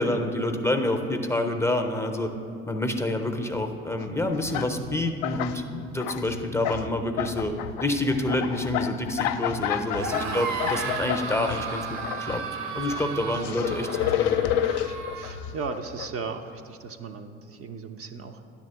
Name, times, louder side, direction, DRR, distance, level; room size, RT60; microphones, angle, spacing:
voice 1, 0.0-2.3 2.7-11.9 12.2-12.4 12.7-13.9 14.2-14.4, left 1 dB, 10° left, 5 dB, 0.6 m, -27 dB
sound 1, 3.6-3.8 4.2-5.1 5.4-5.7 6.1-6.4 6.8-7.0 7.4-7.6 8.0-8.3 8.6-8.9 9.2-9.6 9.9-10.1 10.7-10.9 11.3-11.5 12.0-12.2, left 1 dB, 85° right, 1.1 m, -48 dB
sound 2, 4.0-4.1 4.3-5.6 5.9-6.9 7.2-12.4 12.8-16.1, left 11 dB, 60° left, 0.4 m, -30 dB
sound 3, 9.9-15.3, right 5 dB, 60° right, 0.9 m, -34 dB
voice 2, 15.1-18.4, right 4 dB, 40° right, 6 dB, 0.5 m, -36 dB
10.0 x 3.6 x 6.6 m, 2.4 s
hypercardioid pair, 65°, 35 cm